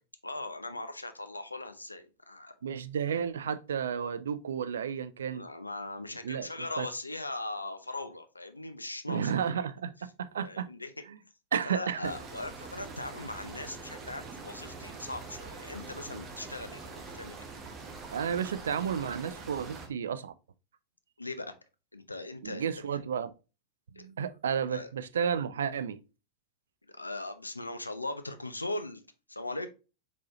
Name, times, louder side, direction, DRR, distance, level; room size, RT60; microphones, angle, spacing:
voice 1, 0.2-2.6 5.3-9.4 10.4-10.9 11.7-17.4 21.2-21.5 21.9-22.7 23.9-24.1 24.7-24.9 26.9-29.0 29.3-29.7, left 2 dB, 85° left, 0.6 m, -39 dB
voice 2, 2.6-5.4 6.2-6.5 6.8-6.9 9.1-10.7 11.1-11.2 11.5-12.1 18.1-20.3 22.4-23.3 23.9-26.0, right 7 dB, 65° right, 0.4 m, -32 dB
sound 1, 12.0-19.9, right 4 dB, 25° right, 1.1 m, -44 dB
4.6 x 4.1 x 2.8 m
figure-of-eight pair, 90°, 0 cm